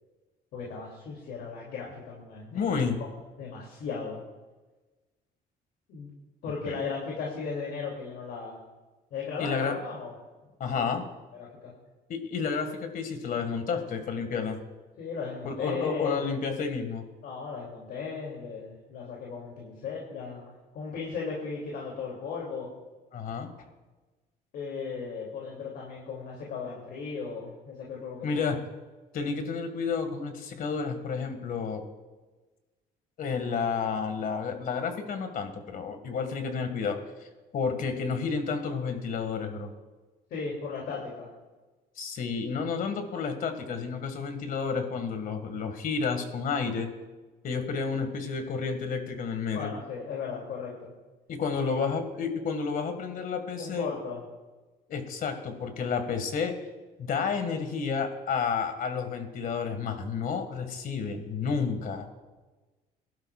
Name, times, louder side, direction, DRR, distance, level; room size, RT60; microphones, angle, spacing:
voice 1, 0.5-3.1 3.4-4.2 5.9-6.1 6.4-8.6 9.1-10.1 10.7-10.8 11.3-11.7 15.0-16.2 17.2-22.7 24.5-28.5 40.3-41.3 49.5-50.9 51.5-51.8 53.6-54.2, left 5 dB, 70° left, -2 dB, 2.8 m, -36 dB
voice 2, 2.5-3.0 6.6-6.8 9.4-9.7 10.6-11.1 12.1-14.6 15.4-17.0 23.1-23.5 28.2-28.6 29.1-31.8 33.2-39.7 42.0-46.9 47.4-49.7 51.3-53.9 54.9-56.5 57.0-62.1, left 5 dB, 55° left, 7 dB, 1.9 m, -31 dB
21.5 x 12.0 x 2.4 m, 1.2 s
cardioid pair, 110°, 17 cm